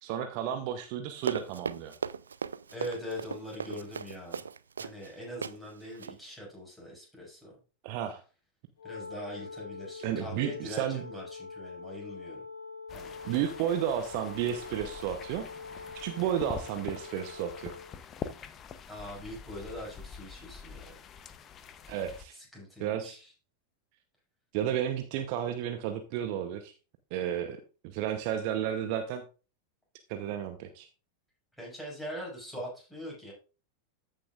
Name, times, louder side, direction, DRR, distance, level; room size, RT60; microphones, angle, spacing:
voice 1, 0.0-1.9 7.8-8.2 10.0-11.0 13.2-15.5 15.9-17.7 21.9-22.4 22.8-23.2 24.5-26.7 27.1-27.6 27.8-29.2 30.1-30.9, right 10 dB, 45° right, 7 dB, 0.8 m, -32 dB
Run, 1.2-5.1 5.4-5.6 5.9-6.2, right 6 dB, 70° right, 0.4 m, -37 dB
voice 2, 2.7-4.5 4.8-7.5 8.8-12.4 12.9-13.2 18.9-20.9 22.3-23.3 31.6-33.3, equal, 5° left, -3 dB, 5.7 m, -42 dB
Wind instrument woodwind instrument, 8.8-18.0, left 4 dB, 65° left, 2.1 m, -44 dB
sound 1, 12.9-22.2, left 7 dB, 30° left, 0.8 m, -45 dB
14.0 x 6.5 x 2.5 m, 0.34 s
figure-of-eight pair, 90°, 0 cm